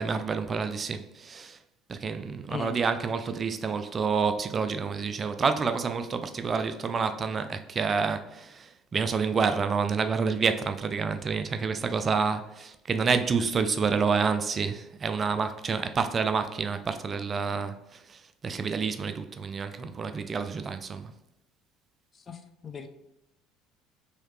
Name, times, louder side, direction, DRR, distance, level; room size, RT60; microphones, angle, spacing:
voice 1, 0.0-1.6 1.9-21.1, right 5 dB, 35° right, 0.3 m, -28 dB
voice 2, 22.1-22.9, left 6 dB, 35° left, 0.4 m, -39 dB
3.1 x 2.8 x 3.2 m
hypercardioid pair, 60°, 0 cm